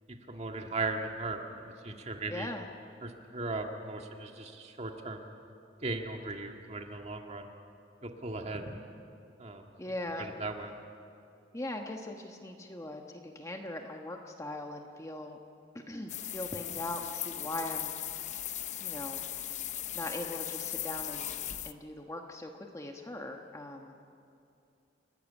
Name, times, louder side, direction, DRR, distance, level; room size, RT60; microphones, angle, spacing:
voice 1, 0.1-2.5 3.0-5.3 5.8-7.5 8.0-8.8 9.4-9.7 10.2-10.8, right 3 dB, 35° right, 3 dB, 1.8 m, -38 dB
voice 2, 2.3-2.6 9.8-10.3 11.5-15.4 15.9-17.9 18.8-19.2 19.9-21.3 21.6-24.0, left 1 dB, 15° left, 3 dB, 1.2 m, -40 dB
sound 1, 16.1-21.7, left 12 dB, 40° left, 0.6 m, -38 dB
29.5 x 13.0 x 9.9 m, 2.5 s
head